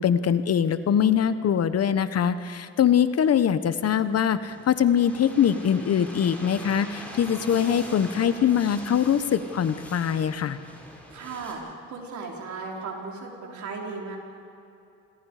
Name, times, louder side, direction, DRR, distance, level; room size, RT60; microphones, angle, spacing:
voice 1, 0.0-10.6, left 8 dB, 55° left, 12 dB, 1.1 m, -23 dB
sound 1, 3.7-11.5, equal, 5° left, 6.0 m, -43 dB
voice 2, 11.1-14.2, right 4 dB, 70° right, -1 dB, 4.9 m, -36 dB
28.0 x 22.0 x 5.0 m, 2.7 s
cardioid pair, 90°, 30 cm